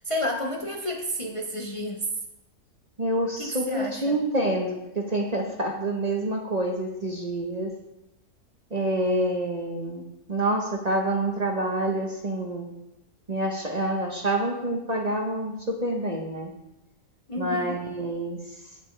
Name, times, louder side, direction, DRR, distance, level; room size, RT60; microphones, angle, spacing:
voice 1, 0.0-2.0 3.4-4.1 17.3-17.8, left 1 dB, 30° left, 1 dB, 0.7 m, -31 dB
voice 2, 3.0-7.7 8.7-10.0 10.3-12.7 13.3-16.5 17.4-18.8, right 1 dB, 35° right, 1 dB, 0.9 m, -27 dB
15.5 x 5.3 x 3.2 m, 0.91 s
omnidirectional pair, 1.4 m